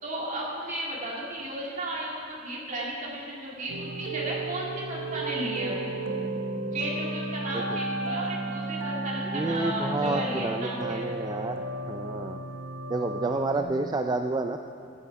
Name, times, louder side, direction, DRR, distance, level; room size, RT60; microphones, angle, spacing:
voice 1, 0.0-5.9 6.7-11.1, right 1 dB, 45° right, -4 dB, 2.7 m, -34 dB
sound 1, 3.7-13.6, right 2 dB, 75° right, 1.0 m, -33 dB
voice 2, 9.3-12.4 12.9-14.6, right 3 dB, 20° right, 6 dB, 0.4 m, -30 dB
16.0 x 9.8 x 4.7 m, 2.4 s
head